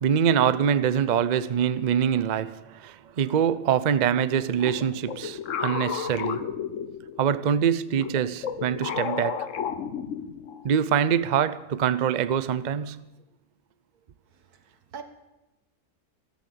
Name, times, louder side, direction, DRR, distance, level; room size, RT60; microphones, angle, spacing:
voice 1, 0.0-6.5 7.2-9.5 10.6-13.0, right 8 dB, 60° right, 0.4 m, -24 dB
sound 1, 4.6-7.4 7.9-10.7, left 7 dB, 60° left, 1.1 m, -32 dB
voice 2, 14.5-15.0, right 6 dB, 90° right, 1.9 m, -42 dB
13.5 x 13.0 x 6.9 m
omnidirectional pair, 1.6 m